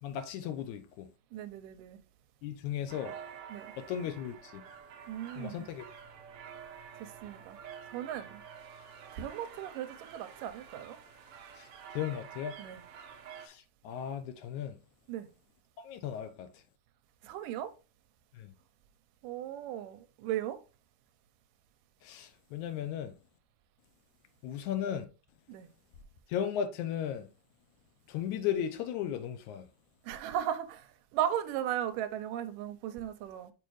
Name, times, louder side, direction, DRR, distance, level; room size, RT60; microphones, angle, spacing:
voice 1, 0.0-1.1 2.4-3.2 3.8-4.6 5.4-5.9 11.6-12.6 13.4-14.8 15.8-16.6 18.3-18.5 22.0-23.2 24.4-25.1 26.3-27.3 28.1-29.7, left 9 dB, 75° left, 1.9 m, -36 dB
voice 2, 1.3-2.0 3.5-3.7 5.1-5.7 7.0-7.6 7.9-8.4 9.1-11.0 12.6-12.8 15.1-15.3 17.2-17.7 19.2-20.6 25.5-25.7 30.0-33.5, right 11 dB, 85° right, 2.2 m, -36 dB
sound 1, 2.9-13.5, right 7 dB, 70° right, 1.3 m, -49 dB
6.7 x 5.1 x 3.1 m
omnidirectional pair, 3.8 m